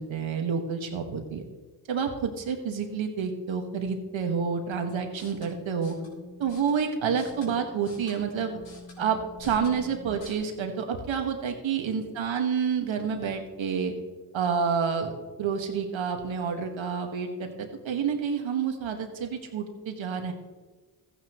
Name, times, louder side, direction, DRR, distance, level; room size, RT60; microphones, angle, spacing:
voice 1, 0.0-1.4 1.9-5.9 6.4-8.6 9.0-13.9 14.3-15.1 15.4-20.3, right 6 dB, 70° right, 4 dB, 1.8 m, -29 dB
sound 1, 5.1-10.3, left 2 dB, 60° left, 3.2 m, -48 dB
14.5 x 9.6 x 3.1 m, 1.3 s
cardioid pair, 65°, 49 cm